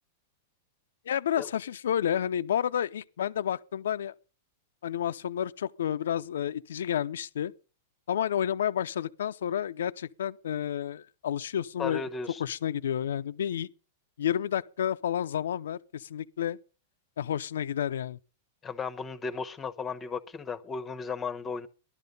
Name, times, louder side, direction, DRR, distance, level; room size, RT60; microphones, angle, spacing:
voice 1, 1.1-4.1 4.8-7.5 8.1-12.0 12.4-13.7 14.2-16.6 17.2-18.2, left 9 dB, 90° left, 0.6 m, -30 dB
voice 2, 11.8-12.4 18.6-21.7, left 5 dB, 15° left, 1.0 m, -35 dB
15.0 x 11.5 x 5.4 m
supercardioid pair, 145°, 0 cm